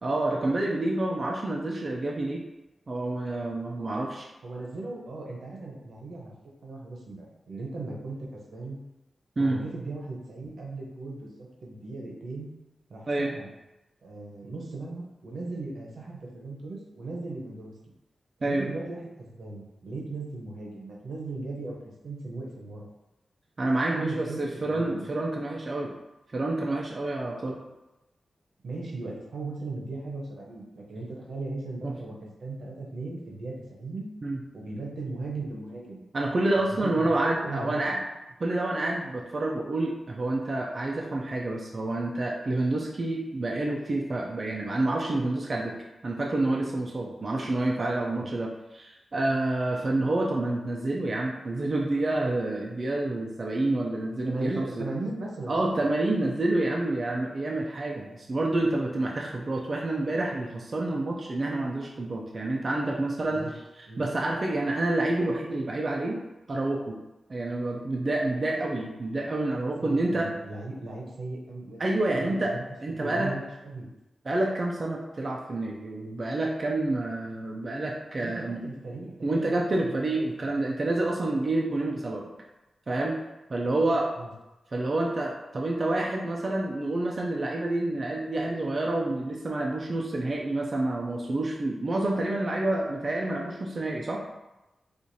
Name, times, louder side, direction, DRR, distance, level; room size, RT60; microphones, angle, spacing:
voice 1, 0.0-2.4 2.9-4.3 9.4-9.6 13.1-13.3 18.4-18.7 23.6-25.9 26.3-27.6 31.8-32.0 34.2-34.4 36.1-38.0 38.4-45.7 46.0-54.9 55.5-63.4 64.0-66.2 66.5-67.0 67.3-70.3 71.8-72.5 72.8-73.3 74.3-78.6 79.2-82.3 82.9-83.2 83.5-84.1 84.7-94.2, right 2 dB, 35° right, -1 dB, 0.3 m, -28 dB
voice 2, 4.4-6.3 6.6-8.8 9.4-12.5 12.9-13.5 14.0-17.7 18.4-21.8 22.0-22.9 23.9-25.1 28.6-34.1 34.5-36.0 36.7-37.0 37.4-38.0 48.1-48.3 54.2-55.8 63.3-63.5 63.9-64.0 69.8-72.6 72.9-73.9 78.2-79.5 79.8-79.9 80.2-80.5 83.6-84.3, right 2 dB, 70° right, -2 dB, 0.7 m, -38 dB
4.5 x 2.4 x 2.6 m, 0.99 s
wide cardioid pair, 180°, 0 cm